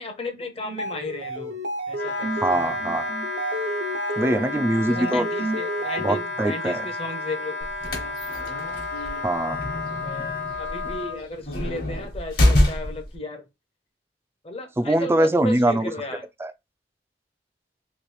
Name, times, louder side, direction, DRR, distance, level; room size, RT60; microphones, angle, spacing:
voice 1, 0.0-1.6 1.9-2.7 4.9-7.6 7.9-8.2 8.9-9.3 10.0-13.5 14.4-16.2, left 2 dB, 35° left, 0.7 m, -35 dB
sound 1, 0.6-6.4, right 1 dB, 80° right, 0.7 m, -31 dB
Wind instrument woodwind instrument, 1.9-11.2, left 3 dB, 85° left, 0.8 m, -32 dB
voice 2, 2.4-3.0 4.2-5.3 6.0-6.8 9.2-9.6 14.8-15.9 16.4-16.5, right 1 dB, 15° right, 0.3 m, -22 dB
sound 2, 7.6-13.2, left 1 dB, 55° left, 1.2 m, -25 dB
3.0 x 2.8 x 3.1 m
head